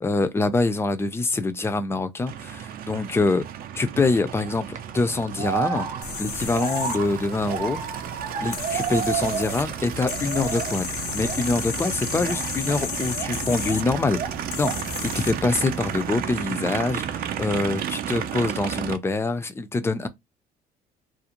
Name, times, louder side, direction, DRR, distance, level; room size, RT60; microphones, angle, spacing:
voice 1, 0.0-3.5 3.8-5.9 6.2-7.8 8.4-10.9 11.1-14.2 14.6-14.7 15.0-20.1, left 3 dB, 15° left, 0.4 m, -25 dB
Aircraft, 2.3-19.0, right 8 dB, 60° right, 0.5 m, -33 dB
sound 1, 4.4-4.8 5.4-9.7 10.0-10.8 11.2-11.5 12.2-13.9 14.1-14.9, right 7 dB, 45° right, 0.8 m, -31 dB
sound 2, 6.0-16.0, left 8 dB, 80° left, 0.7 m, -35 dB
2.5 x 2.0 x 2.8 m
cardioid pair, 110°, 17 cm